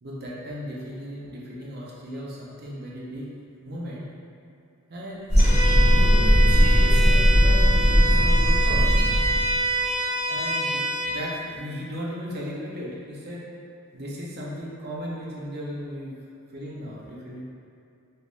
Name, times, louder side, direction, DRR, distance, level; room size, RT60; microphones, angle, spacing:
voice 1, 0.0-3.3 3.6-4.1 4.9-5.5 5.9-8.9 10.3-13.5 13.9-16.2 16.5-17.4, equal, 50° right, -5 dB, 0.6 m, -36 dB
sound 1, 5.3-9.6, equal, 30° right, 1.2 m, -18 dB
Bowed string instrument, 5.4-11.2, right 2 dB, 35° left, 0.5 m, -26 dB
3.2 x 3.1 x 2.5 m, 2.5 s
head